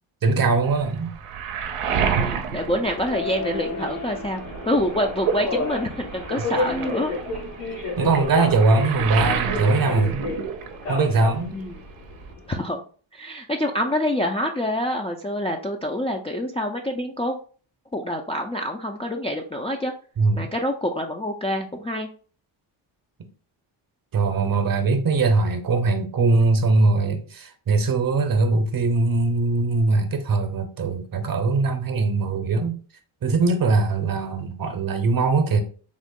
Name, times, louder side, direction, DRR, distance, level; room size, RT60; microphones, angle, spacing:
voice 1, 0.2-1.1 8.0-10.2 10.9-11.6 20.2-20.5 24.1-32.8 33.2-35.6, right 3 dB, 45° right, 0.7 m, -21 dB
Waves surf, 0.6-3.9 4.2-11.1 11.4-12.3, right 7 dB, 85° right, 0.6 m, -30 dB
voice 2, 1.9-7.1 11.5-11.8 12.5-12.8 13.1-17.4 17.9-19.9 20.3-22.1, left 1 dB, 15° left, 0.3 m, -26 dB
Subway metro underground, 2.9-12.6, left 3 dB, 85° left, 1.7 m, -31 dB
3.7 x 2.0 x 3.6 m
cardioid pair, 65°, 50 cm